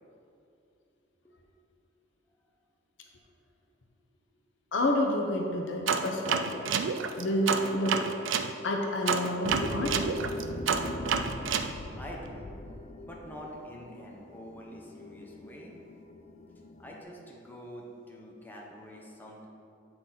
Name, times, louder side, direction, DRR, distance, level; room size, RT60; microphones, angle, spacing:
voice 1, 4.7-6.7 7.1-8.1 8.6-10.0 11.8-11.9, left 1 dB, 75° left, 1 dB, 0.8 m, -29 dB
sound 1, 5.9-8.5 9.1-11.7, right 6 dB, 85° right, 0.4 m, -29 dB
sound 2, 9.5-17.0, left 1 dB, 40° left, 0.4 m, -40 dB
voice 2, 12.0-12.5 13.0-15.7 16.8-19.4, equal, 10° left, -3 dB, 0.8 m, -46 dB
7.9 x 4.4 x 3.9 m, 2.6 s
head